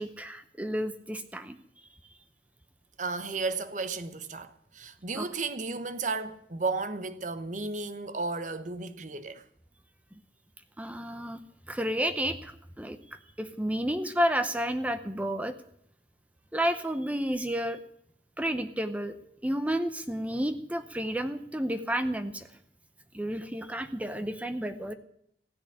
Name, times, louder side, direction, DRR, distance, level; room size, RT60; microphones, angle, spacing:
voice 1, 0.0-1.6 5.1-5.3 10.1-10.2 10.8-11.4 11.7-15.6 16.5-17.8 18.4-19.2 19.4-22.5 23.1-24.9, equal, 10° right, 0.7 m, -31 dB
voice 2, 3.0-9.4, right 3 dB, 45° right, 0.9 m, -34 dB
15.5 x 7.0 x 10.0 m
head